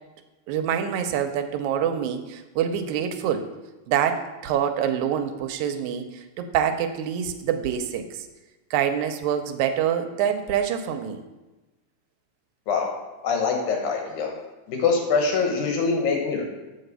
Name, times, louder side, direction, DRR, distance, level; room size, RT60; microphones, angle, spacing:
voice 1, 0.5-3.5 3.9-8.3 8.7-11.2, right 9 dB, 80° right, 7 dB, 1.9 m, -26 dB
voice 2, 13.2-14.3 14.7-16.4, left 5 dB, 85° left, 1 dB, 2.7 m, -24 dB
7.4 x 4.0 x 6.6 m, 1.1 s
omnidirectional pair, 3.4 m